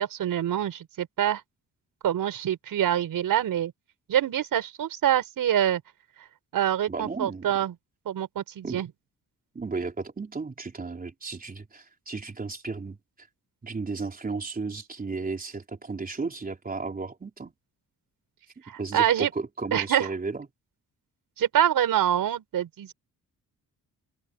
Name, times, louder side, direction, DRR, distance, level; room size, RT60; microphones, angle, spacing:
voice 1, 0.0-1.4 2.0-3.7 4.1-5.8 6.5-7.7 8.1-8.9 18.7-19.3 19.7-20.1 21.4-22.9, right 11 dB, 80° right, 5.7 m, -25 dB
voice 2, 6.9-7.5 8.6-8.8 9.5-13.3 13.6-17.5 18.8-20.5, right 4 dB, 25° right, 3.8 m, -34 dB
cardioid pair, 135°, 34 cm